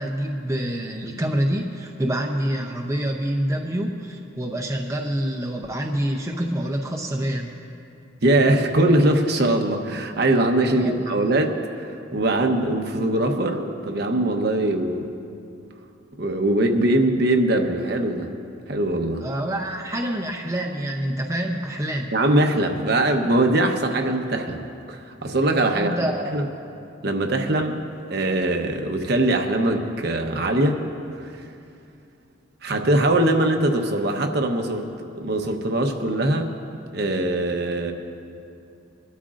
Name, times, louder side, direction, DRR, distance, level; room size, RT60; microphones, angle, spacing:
voice 1, 0.0-7.6 10.8-11.0 19.2-22.1 25.7-26.4, right 1 dB, 15° right, 1 dB, 0.6 m, -27 dB
voice 2, 8.2-15.1 16.2-18.3 18.7-19.3 22.1-24.6 24.9-26.0 26.3-26.4 27.0-27.8 28.1-30.8 31.2-31.4 32.6-34.8 35.2-36.5 36.9-37.9, right 1 dB, 55° right, 4 dB, 0.9 m, -21 dB
22.5 x 12.5 x 2.5 m, 2.6 s
head